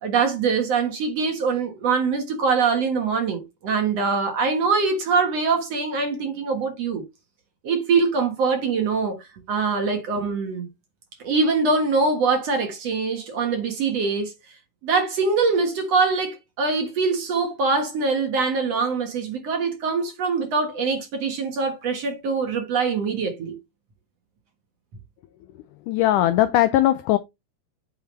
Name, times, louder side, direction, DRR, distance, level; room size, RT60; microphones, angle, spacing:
voice 1, 0.0-7.0 7.6-10.7 11.2-14.3 14.8-23.6, right 4 dB, 55° right, 2.3 m, -23 dB
voice 2, 25.9-27.2, left 14 dB, 80° left, 1.8 m, -19 dB
8.6 x 4.7 x 3.3 m
omnidirectional pair, 4.2 m